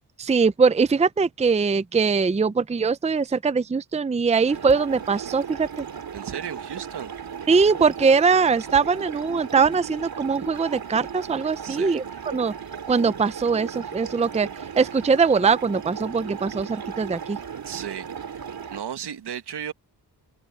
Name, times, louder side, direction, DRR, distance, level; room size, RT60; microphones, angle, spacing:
voice 1, 0.2-5.8 7.5-12.0 12.3-12.5 12.9-14.5 14.8-17.4, right 5 dB, 15° right, 0.6 m, -21 dB
sound 1, 4.5-18.8, right 7 dB, 60° right, 2.9 m, -36 dB
voice 2, 6.1-7.2 11.6-12.0 17.6-18.1 18.7-19.7, right 9 dB, 75° right, 1.7 m, -34 dB
cardioid pair, 80°, 40 cm